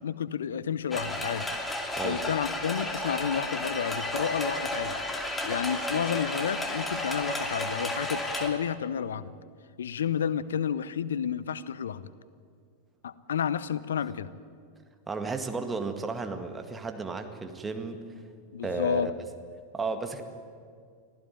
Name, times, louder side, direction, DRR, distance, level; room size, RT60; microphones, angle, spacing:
voice 1, 0.0-1.5 2.0-5.0 5.4-9.3 9.8-12.1 13.0-14.3 18.5-19.1, left 8 dB, 65° left, 18 dB, 0.8 m, -31 dB
sound 1, 0.9-8.5, left 1 dB, 10° left, 2.6 m, -32 dB
voice 2, 15.1-18.0 18.6-19.1 19.7-20.2, right 4 dB, 15° right, 6 dB, 2.0 m, -33 dB
25.0 x 15.5 x 9.4 m, 2.2 s
figure-of-eight pair, 90°, 0 cm